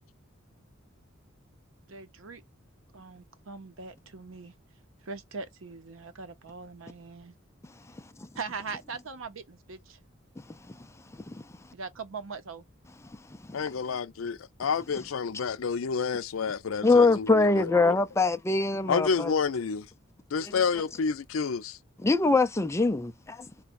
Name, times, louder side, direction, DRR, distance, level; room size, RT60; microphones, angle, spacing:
voice 1, 1.9-2.4 2.9-4.5 5.1-7.3 8.4-10.0 11.7-12.6, right 4 dB, 75° right, 0.7 m, -41 dB
voice 2, 13.5-18.0 18.9-19.9 20.3-21.8, left 5 dB, 85° left, 0.5 m, -29 dB
voice 3, 16.8-19.3 22.0-23.5, left 3 dB, 15° left, 0.4 m, -23 dB
4.0 x 2.2 x 2.5 m
head